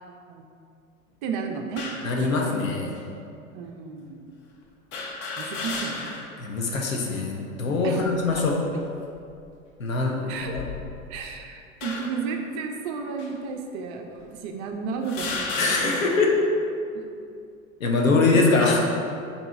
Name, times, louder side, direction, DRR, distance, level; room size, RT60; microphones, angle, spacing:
voice 1, 1.2-1.9 2.2-2.6 3.5-4.3 5.4-6.1 7.8-8.0 8.3-8.4 10.3-10.5 11.1-16.1 16.9-17.1 18.6-18.7, right 5 dB, 35° right, 3 dB, 0.4 m, -33 dB
sound 1, 1.8-2.1 3.0-3.1 4.9-6.4 6.8-6.9 8.0-8.5 9.2-9.4 10.4-11.2 11.8-12.3 13.2-13.3 14.2-14.3 15.0-16.4, left 3 dB, 30° left, 0.5 m, -33 dB
voice 2, 2.0-2.9 6.4-8.6 9.8-10.6 15.6-16.3 17.8-18.8, left 3 dB, 80° left, 0 dB, 0.7 m, -23 dB
4.0 x 2.8 x 3.6 m, 2.5 s
figure-of-eight pair, 85°, 40 cm